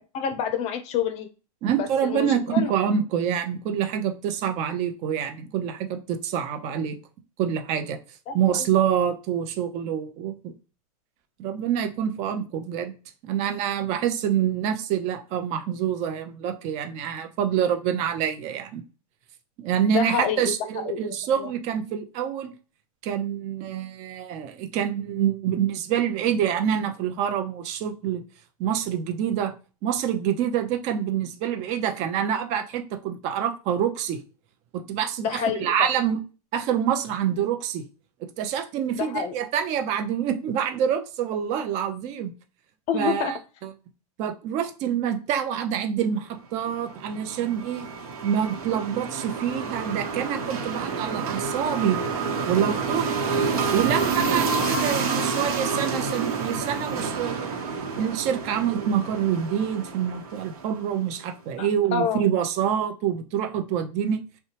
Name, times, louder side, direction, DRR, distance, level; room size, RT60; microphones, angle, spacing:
voice 1, 0.1-1.3 1.8-2.7 8.3-8.7 19.9-21.5 35.2-35.9 38.9-39.3 42.9-43.3 61.6-62.3, left 7 dB, 35° left, 0.6 m, -28 dB
voice 2, 1.6-7.0 7.4-8.0 8.3-10.5 11.4-12.9 13.2-18.8 19.6-22.5 23.0-28.2 28.6-29.5 29.8-34.2 34.7-36.2 36.5-37.9 38.2-42.3 42.9-43.7 44.2-47.9 48.2-52.0 52.5-53.2 53.7-57.5 58.0-64.2, right 9 dB, 35° right, 0.6 m, -26 dB
sound 1, 46.7-61.0, right 5 dB, 70° right, 1.0 m, -29 dB
2.6 x 2.2 x 2.9 m
hypercardioid pair, 125°, 19 cm